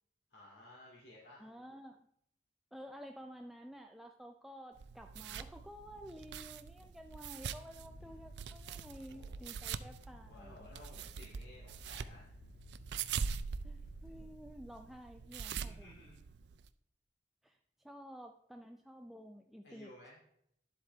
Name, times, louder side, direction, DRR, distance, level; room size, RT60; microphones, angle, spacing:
voice 1, 0.3-1.5 8.9-9.3 10.2-12.4 14.1-14.3 15.5-16.2 19.6-20.2, left 1 dB, 85° left, -6 dB, 2.6 m, -56 dB
voice 2, 1.4-2.1 2.7-10.7 13.6-15.9 17.4-19.9, equal, ahead, 3 dB, 0.4 m, -52 dB
sound 1, 4.8-16.7, right 6 dB, 70° right, 0.4 m, -44 dB
sound 2, 7.8-14.2, left 3 dB, 55° left, 0.5 m, -57 dB
11.5 x 7.7 x 3.4 m, 0.74 s
head